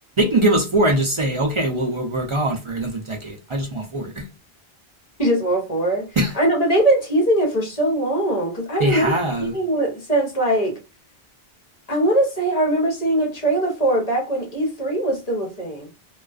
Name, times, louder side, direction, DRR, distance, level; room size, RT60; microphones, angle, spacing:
voice 1, 0.2-4.2 6.2-6.3 8.8-9.5, right 1 dB, 50° right, 0.3 m, -22 dB
voice 2, 5.2-6.1 6.3-9.2 9.5-10.8 11.9-15.9, right 1 dB, 40° left, 1.0 m, -21 dB
2.3 x 2.3 x 2.3 m
omnidirectional pair, 1.1 m